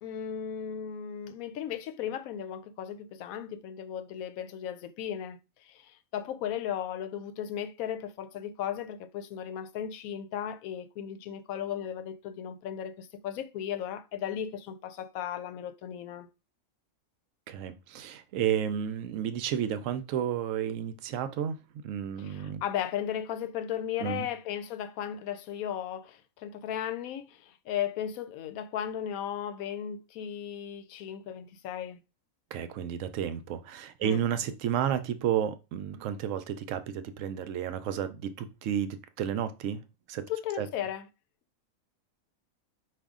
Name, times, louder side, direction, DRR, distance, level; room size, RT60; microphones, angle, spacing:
voice 1, 0.0-16.3 22.2-32.0 34.0-34.2 40.3-41.1, left 9 dB, 80° left, 1.0 m, -36 dB
voice 2, 17.5-21.6 21.8-22.6 24.0-24.3 32.5-39.8 40.1-40.2 40.6-40.7, right 9 dB, 70° right, 0.9 m, -31 dB
5.0 x 2.6 x 3.6 m
omnidirectional pair, 1.5 m